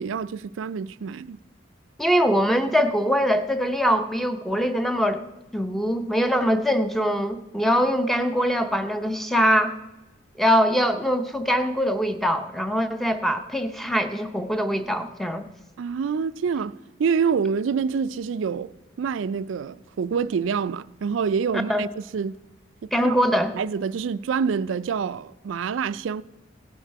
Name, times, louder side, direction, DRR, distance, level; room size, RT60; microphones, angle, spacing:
voice 1, 0.0-1.4 15.8-18.7 19.0-22.4 23.0-23.2 23.5-26.2, right 6 dB, 80° right, 0.3 m, -26 dB
voice 2, 2.0-5.2 5.5-9.7 10.4-15.4 21.7-21.8 22.9-23.5, equal, ahead, 0.6 m, -22 dB
16.5 x 7.3 x 4.7 m
head